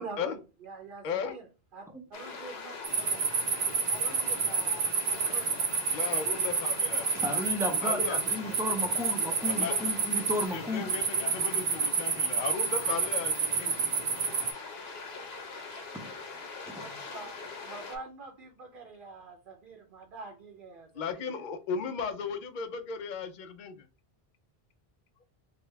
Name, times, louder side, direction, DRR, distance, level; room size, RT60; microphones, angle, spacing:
voice 1, 0.0-1.5 1.7-3.2 3.9-5.5 17.1-17.4 17.6-21.4, right 3 dB, 60° right, 2 dB, 0.8 m, -45 dB
voice 2, 1.0-1.4 5.9-7.1 7.8-8.2 9.5-9.8 10.5-13.7 20.9-23.8, left 6 dB, 60° left, 9 dB, 0.6 m, -35 dB
sound 1, 2.1-18.0, left 4 dB, 80° left, 1.0 m, -42 dB
sound 2, 2.8-14.5, right 5 dB, 90° right, 1.0 m, -29 dB
voice 3, 7.1-10.8 16.0-16.1 16.8-16.9, left 1 dB, 5° right, 2 dB, 0.4 m, -33 dB
3.6 x 2.2 x 3.2 m, 0.31 s
omnidirectional pair, 1.0 m